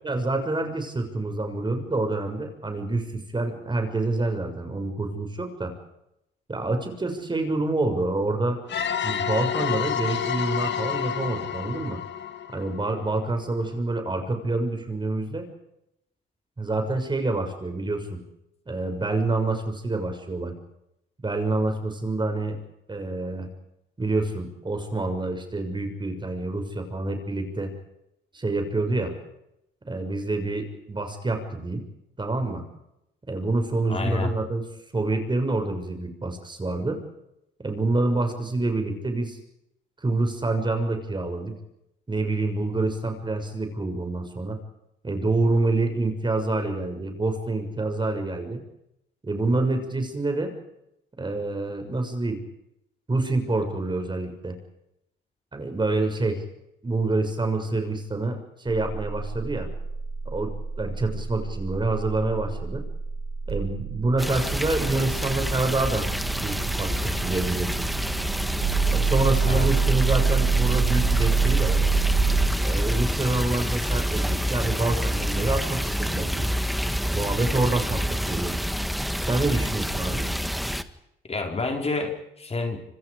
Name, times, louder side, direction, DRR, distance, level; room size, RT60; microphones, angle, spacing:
voice 1, 0.0-5.7 6.5-8.6 9.0-12.0 12.5-15.5 16.6-18.2 18.7-20.5 21.2-22.6 22.9-23.5 24.0-27.7 28.3-29.1 29.9-31.8 32.2-32.6 33.3-34.6 34.9-37.0 37.6-39.4 40.0-41.5 42.1-44.6 45.0-48.6 49.2-50.5 51.2-52.4 53.1-54.6 55.5-56.4 56.8-59.7 60.2-62.8 63.5-66.1 66.4-67.9 68.9-71.8 72.6-76.6 77.1-78.6 79.2-80.3, right 2 dB, 25° right, 6 dB, 6.6 m, -27 dB
sound 1, 8.7-13.3, left 8 dB, 65° left, 2.2 m, -29 dB
voice 2, 33.9-34.3 69.5-69.7 81.3-82.8, left 3 dB, 30° left, 2 dB, 4.9 m, -28 dB
sound 2, 58.7-72.5, right 5 dB, 50° right, 7.0 m, -27 dB
sound 3, 64.2-80.8, equal, ahead, 1.7 m, -27 dB
26.5 x 25.5 x 5.1 m, 0.83 s
cardioid pair, 90°, 20 cm